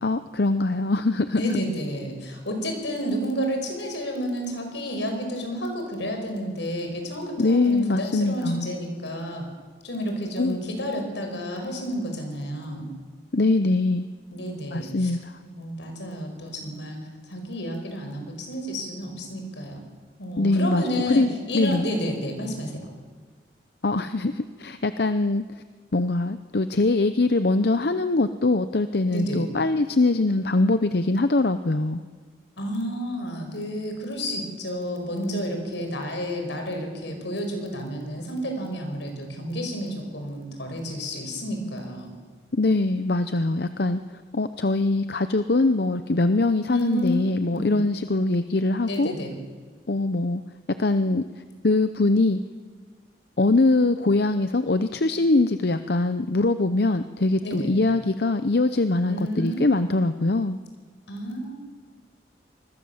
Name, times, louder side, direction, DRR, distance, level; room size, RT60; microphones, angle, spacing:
voice 1, 0.0-1.4 7.4-8.7 10.4-10.6 13.3-14.1 14.7-15.3 20.4-21.3 21.5-21.8 23.8-25.4 25.9-32.0 42.5-44.0 44.3-49.1 49.9-50.4 50.8-51.2 51.6-52.4 53.4-60.6, left 2 dB, 60° left, 10 dB, 0.7 m, -22 dB
voice 2, 1.3-9.5 9.8-12.9 14.3-15.1 15.6-17.0 17.3-19.8 20.2-21.2 21.5-22.9 29.1-29.4 32.6-42.1 46.7-47.2 47.5-47.8 48.9-49.3 57.4-57.7 59.0-59.6 61.1-61.5, equal, 80° left, 4 dB, 5.8 m, -30 dB
26.0 x 21.0 x 7.3 m, 1.5 s
head